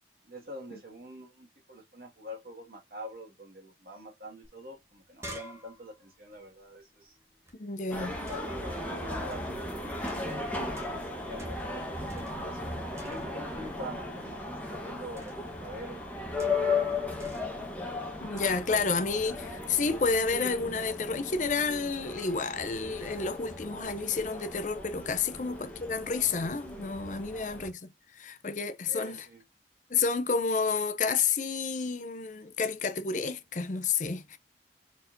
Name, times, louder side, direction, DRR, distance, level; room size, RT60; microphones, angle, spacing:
voice 1, 0.3-7.2 8.0-17.4 28.9-29.4, equal, 55° right, 2.0 m, -45 dB
sound 1, 4.4-4.5 4.8-7.5 8.3-8.7 9.3-9.6 10.1-11.1 11.4-11.8 12.1-12.7 13.0-13.6 15.2-15.5 16.4-16.8 17.2-17.6 18.4-18.7, left 1 dB, 15° right, 1.3 m, -48 dB
voice 2, 7.6-8.1 18.2-29.2 29.9-34.4, left 5 dB, 45° left, 0.6 m, -30 dB
sound 2, 7.9-27.7, left 3 dB, 10° left, 1.2 m, -36 dB
4.5 x 4.3 x 2.6 m
head